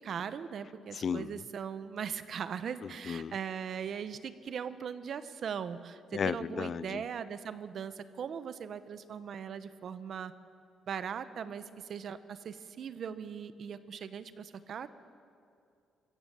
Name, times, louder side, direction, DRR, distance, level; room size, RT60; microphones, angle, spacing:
voice 1, 0.0-10.3 10.9-14.9, right 7 dB, 60° right, 12 dB, 1.0 m, -39 dB
voice 2, 0.9-1.4 2.8-3.3 6.1-7.0, left 7 dB, 50° left, 20 dB, 0.4 m, -35 dB
23.5 x 15.5 x 7.1 m, 2.5 s
cardioid pair, 90°, 0 cm